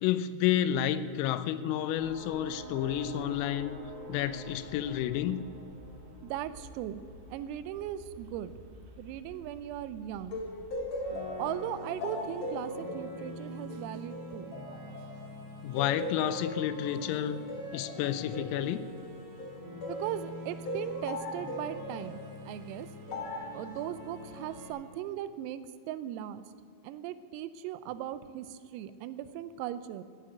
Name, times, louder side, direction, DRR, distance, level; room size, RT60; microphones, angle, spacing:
voice 1, 0.0-3.8 4.1-5.4 15.6-17.4 17.7-18.8, left 11 dB, 85° left, 13 dB, 3.3 m, -30 dB
sound 1, 1.9-11.4, right 2 dB, 55° right, 4.4 m, -48 dB
voice 2, 6.2-7.0 7.3-8.5 9.0-10.4 11.4-14.5 19.9-22.9 23.5-26.4 26.8-30.0, right 11 dB, 85° right, 14 dB, 3.4 m, -38 dB
sound 2, 10.3-15.3 15.8-20.1 20.7-22.1 23.1-23.5, left 1 dB, 60° left, 1.7 m, -39 dB
sound 3, 11.0-24.7, left 1 dB, 40° right, 2.2 m, -45 dB
15.5 x 7.9 x 9.2 m, 2.4 s
omnidirectional pair, 5.9 m